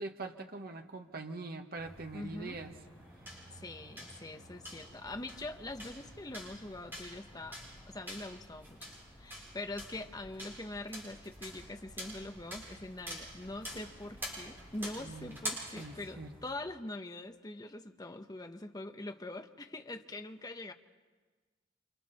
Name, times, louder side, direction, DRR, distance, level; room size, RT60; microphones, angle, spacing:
voice 1, 0.0-2.7 15.0-15.4 15.8-16.3, right 3 dB, 50° right, 4 dB, 1.5 m, -43 dB
sound 1, 1.8-16.5, equal, 10° right, 7.0 m, -47 dB
voice 2, 2.1-2.6 3.5-7.6 7.9-20.7, left 2 dB, 20° left, 6 dB, 1.0 m, -43 dB
sound 2, 4.9-15.4, left 1 dB, 50° left, 1.3 m, -59 dB
28.0 x 27.0 x 4.2 m, 1.4 s
head